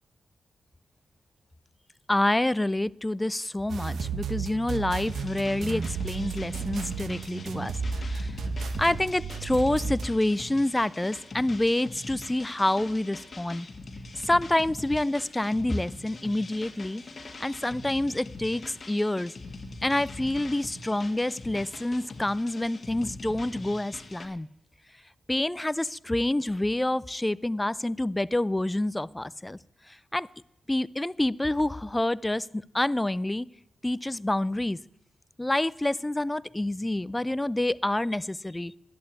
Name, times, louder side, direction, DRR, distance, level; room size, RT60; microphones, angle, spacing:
voice 1, 2.1-7.8 8.1-8.3 8.8-13.7 14.2-17.0 17.4-19.3 19.8-24.5 25.3-29.6 30.1-30.3 30.7-33.5 33.8-34.8 35.4-38.8, left 1 dB, 15° left, 20 dB, 0.4 m, -27 dB
sound 1, 3.7-10.1, right 5 dB, 80° right, 0.9 m, -33 dB
sound 2, 5.0-24.3, left 3 dB, 45° left, 2.0 m, -43 dB
11.5 x 8.9 x 8.5 m, 0.81 s
cardioid pair, 80°, 0 cm